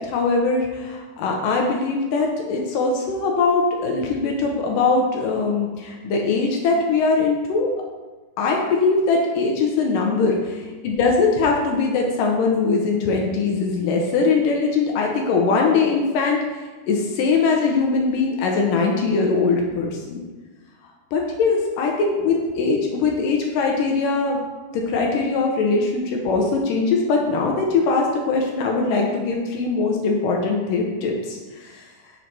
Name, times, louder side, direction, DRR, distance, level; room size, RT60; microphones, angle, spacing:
voice 1, 0.0-7.7 8.4-10.5 10.8-16.4 16.9-20.2 21.1-24.4 24.7-31.9, left 4 dB, 75° left, 0 dB, 2.1 m, -21 dB
6.4 x 3.9 x 4.6 m, 1.3 s
omnidirectional pair, 4.4 m